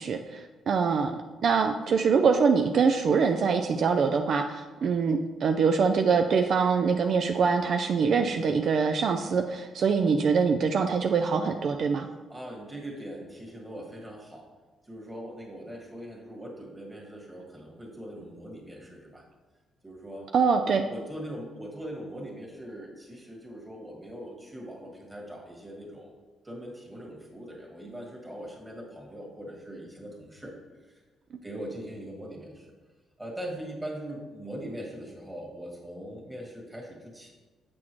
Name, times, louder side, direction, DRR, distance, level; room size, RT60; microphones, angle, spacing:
voice 1, 0.0-12.1 20.3-20.8, right 5 dB, 60° right, 6 dB, 0.4 m, -24 dB
voice 2, 12.3-14.4 14.8-19.2 19.8-20.3 20.9-26.2 26.4-30.5 30.8-31.0 31.4-32.7 33.2-37.3, equal, 15° right, -2 dB, 1.8 m, -41 dB
7.4 x 6.1 x 3.0 m, 1.3 s
cardioid pair, 90°, 0 cm